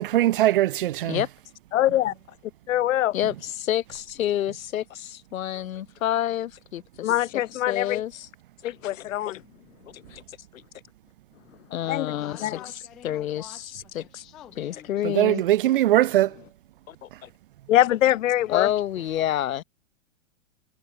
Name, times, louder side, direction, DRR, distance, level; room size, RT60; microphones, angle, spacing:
voice 1, 0.0-1.2 15.0-16.4 17.1-17.2, right 14 dB, 40° right, 0.6 m, -21 dB
voice 2, 1.7-2.1 2.7-3.1 7.0-8.0 8.6-9.4 11.9-12.1 12.4-12.5 17.7-18.7, left 13 dB, 65° left, 1.1 m, -23 dB
voice 3, 3.1-7.1 7.7-8.3 10.5-10.6 11.7-12.4 13.0-13.5 13.9-14.2 14.6-15.4 16.9-17.3 18.5-19.6, left 11 dB, 85° left, 1.5 m, -28 dB
voice 4, 11.8-15.5 18.4-18.7, left 11 dB, ahead, 0.3 m, -49 dB
supercardioid pair, 170°, 40 cm